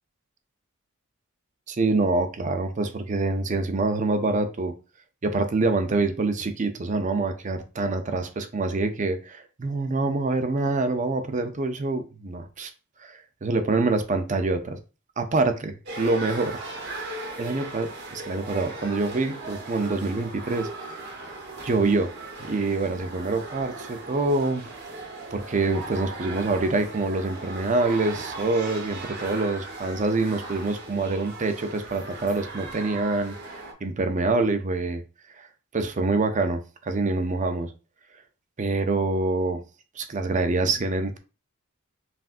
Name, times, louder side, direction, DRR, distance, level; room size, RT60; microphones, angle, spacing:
voice 1, 1.7-4.7 5.2-12.7 13.0-14.8 15.2-16.5 17.4-21.0 21.6-22.1 22.5-24.6 25.3-35.0 35.4-35.5 35.7-37.7 38.6-39.6 40.0-41.2, right 3 dB, 35° right, 0.5 m, -26 dB
sound 1, 15.9-33.7, right 2 dB, 50° right, 1.0 m, -38 dB
5.7 x 2.5 x 2.5 m
head